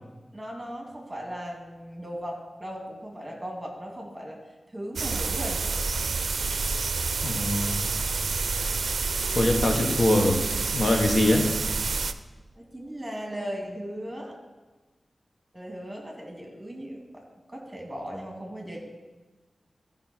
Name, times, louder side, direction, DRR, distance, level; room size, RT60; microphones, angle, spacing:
voice 1, 0.3-4.4 4.7-5.7 12.6-14.4 15.5-17.2 17.5-18.8, equal, 15° right, 0 dB, 2.4 m, -37 dB
sound 1, 5.0-12.1, right 4 dB, 80° right, 0.4 m, -28 dB
voice 2, 7.2-7.8 9.3-10.4 10.7-11.5, left 1 dB, 65° left, 2 dB, 1.2 m, -23 dB
14.0 x 5.5 x 4.4 m, 1.2 s
wide cardioid pair, 70°, 0 cm